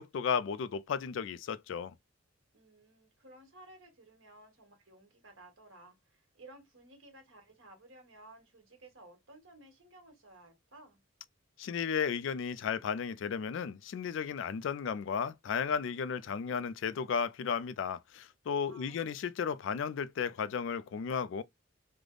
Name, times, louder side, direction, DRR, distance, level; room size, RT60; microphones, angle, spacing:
voice 1, 0.0-1.9 11.6-21.4, left 6 dB, 60° left, 0.3 m, -34 dB
voice 2, 2.5-11.0 18.7-19.3, right 2 dB, 65° right, 1.4 m, -56 dB
3.3 x 2.1 x 3.7 m
head